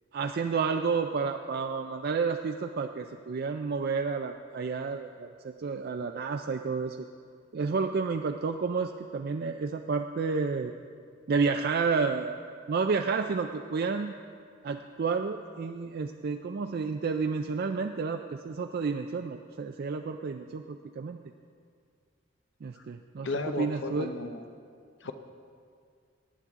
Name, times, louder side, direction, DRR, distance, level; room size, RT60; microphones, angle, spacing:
voice 1, 0.1-7.0 7.5-10.7 11.3-12.4 12.7-14.1 14.6-21.2 22.6-23.3 23.6-24.1, right 5 dB, 50° right, 5 dB, 0.4 m, -30 dB
voice 2, 23.2-24.4 25.0-25.1, left 3 dB, 65° left, 7 dB, 0.7 m, -34 dB
18.0 x 9.4 x 3.6 m, 2.1 s
head